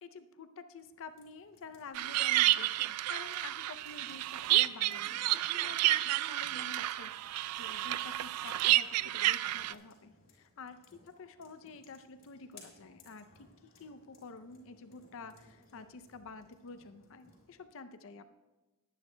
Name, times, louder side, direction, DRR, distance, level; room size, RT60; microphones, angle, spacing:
voice 1, 0.0-13.5 13.8-18.3, left 4 dB, 65° left, 10 dB, 0.6 m, -49 dB
sound 1, 0.8-17.6, left 3 dB, 45° left, 4.0 m, -63 dB
sound 2, 1.9-9.7, right 15 dB, 85° right, 0.3 m, -30 dB
21.0 x 9.9 x 2.2 m, 1.1 s
head